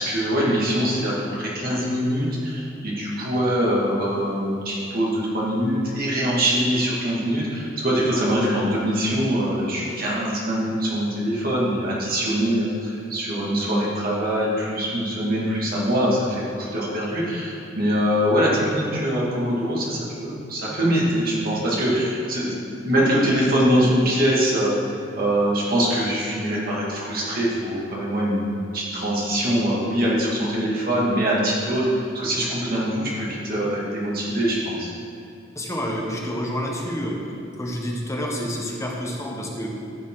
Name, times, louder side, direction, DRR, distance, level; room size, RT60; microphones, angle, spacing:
voice 1, 0.0-24.7 25.1-28.5 28.7-34.9, equal, 55° right, -6 dB, 2.4 m, -23 dB
voice 2, 35.5-37.2 37.6-39.7, equal, 15° left, -2 dB, 1.3 m, -28 dB
13.5 x 7.4 x 3.9 m, 2.7 s
head